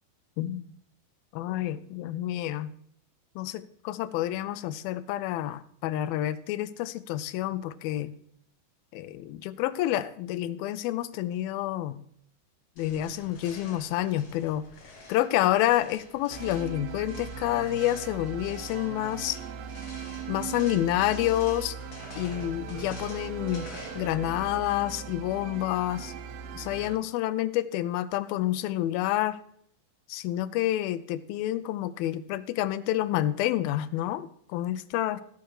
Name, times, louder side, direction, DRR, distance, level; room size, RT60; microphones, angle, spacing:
voice 1, 0.4-0.7 1.3-2.7 3.4-8.1 8.9-12.0 12.8-14.6 15.1-19.4 20.3-21.8 22.2-23.7 24.0-26.1 26.6-29.4 30.1-35.2, left 14 dB, 80° left, 14 dB, 2.5 m, -28 dB
sound 1, 12.8-24.6, left 2 dB, 35° left, 2.6 m, -49 dB
sound 2, 16.3-27.0, right 7 dB, 85° right, 2.9 m, -39 dB
16.0 x 6.1 x 6.5 m, 0.66 s
omnidirectional pair, 4.3 m